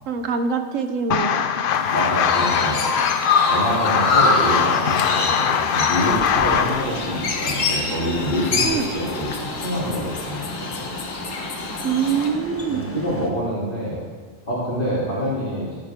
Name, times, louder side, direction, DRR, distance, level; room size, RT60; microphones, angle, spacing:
voice 1, 0.1-1.4 8.6-8.9 11.8-12.8, right 6 dB, 85° right, 8 dB, 1.2 m, -24 dB
sound 1, 1.1-6.9, left 8 dB, 60° left, 0.6 m, -22 dB
Chirp tweet, 1.7-12.3, left 4 dB, 80° left, 1.5 m, -25 dB
voice 2, 1.9-3.1 3.5-10.4 10.7-10.9 12.7-14.0 14.4-15.8, equal, 40° left, -9 dB, 3.3 m, -26 dB
sound 2, 6.1-13.3, equal, 10° left, 0.9 m, -36 dB
14.0 x 10.5 x 3.7 m, 1.5 s
omnidirectional pair, 1.3 m